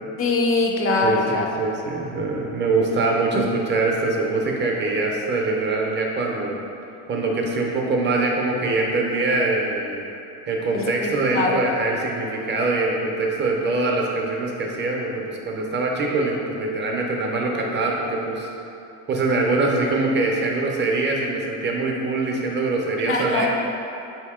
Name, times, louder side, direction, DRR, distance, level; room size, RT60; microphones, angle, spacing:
voice 1, 0.2-1.5 3.3-3.5 10.7-11.6 23.0-23.5, left 3 dB, 40° left, 1 dB, 0.5 m, -23 dB
voice 2, 1.0-6.6 7.1-10.0 10.5-18.5 19.1-23.5, right 3 dB, 35° right, 0 dB, 0.6 m, -23 dB
4.1 x 2.8 x 3.5 m, 2.8 s
supercardioid pair, 105°, 33 cm